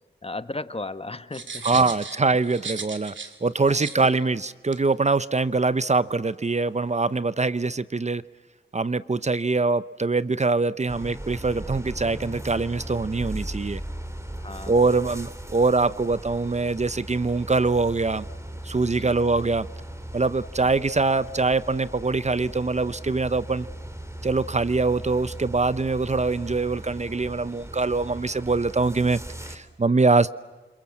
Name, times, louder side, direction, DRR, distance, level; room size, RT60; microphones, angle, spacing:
voice 1, 0.2-1.9 3.7-3.9 14.4-14.9 19.0-19.2 20.6-20.8, left 2 dB, 30° left, 12 dB, 1.2 m, -36 dB
sound 1, 1.3-3.4 3.7-4.0 4.7-4.8, right 5 dB, 80° right, 2.4 m, -36 dB
voice 2, 1.6-3.1 3.4-8.2 8.7-13.8 14.7-18.3 18.6-19.7 20.1-23.7 24.2-29.2 29.4-30.3, right 3 dB, 35° right, 15 dB, 0.8 m, -23 dB
sound 2, 10.9-29.6, right 1 dB, 15° right, 3.8 m, -38 dB
30.0 x 27.0 x 7.5 m, 1.3 s
cardioid pair, 40°, 19 cm